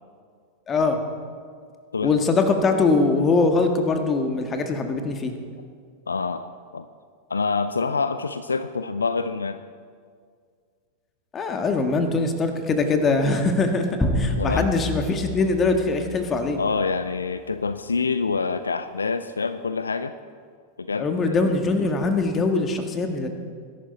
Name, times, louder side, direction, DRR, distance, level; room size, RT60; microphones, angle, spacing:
voice 1, 0.7-1.0 2.0-5.3 11.3-13.9 14.2-16.6 21.0-23.3, left 3 dB, 25° left, 6 dB, 1.7 m, -22 dB
voice 2, 6.1-6.9 7.3-9.6 14.4-14.8 16.6-20.1 20.8-21.3, left 4 dB, 75° left, 12 dB, 0.4 m, -26 dB
sound 1, 14.0-16.8, left 1 dB, 5° left, 1.8 m, -28 dB
21.5 x 11.5 x 4.2 m, 2.1 s
figure-of-eight pair, 90°, 0 cm